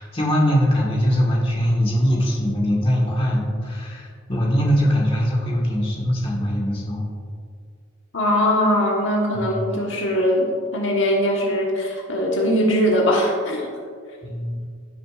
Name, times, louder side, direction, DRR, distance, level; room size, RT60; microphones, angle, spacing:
voice 1, 0.0-7.1 9.3-9.5 14.2-14.6, equal, 25° left, -3 dB, 1.6 m, -21 dB
voice 2, 8.1-13.7, equal, 70° left, -1 dB, 1.3 m, -21 dB
15.5 x 6.7 x 2.5 m, 2.1 s
head